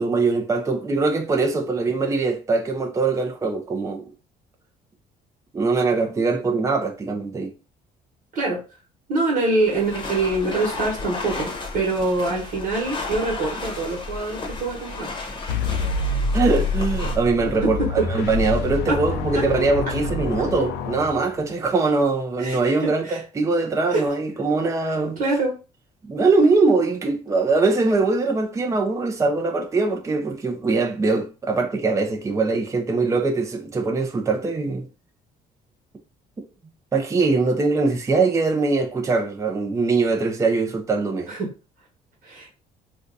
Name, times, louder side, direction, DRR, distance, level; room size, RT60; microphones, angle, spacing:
voice 1, 0.0-4.1 5.5-7.5 16.3-25.2 26.1-34.9 36.9-41.3, right 3 dB, 20° right, 0.5 m, -22 dB
voice 2, 9.1-15.1 17.6-18.1 18.9-19.0 19.3-19.4 22.4-23.2 23.9-24.0 25.2-25.5 41.3-41.5 42.2-42.5, right 2 dB, 60° right, 1.2 m, -24 dB
sound 1, 9.6-17.2, left 3 dB, 30° left, 0.9 m, -33 dB
sound 2, 15.5-21.7, left 3 dB, 85° left, 0.5 m, -26 dB
2.6 x 2.3 x 3.9 m
cardioid pair, 110°, 17 cm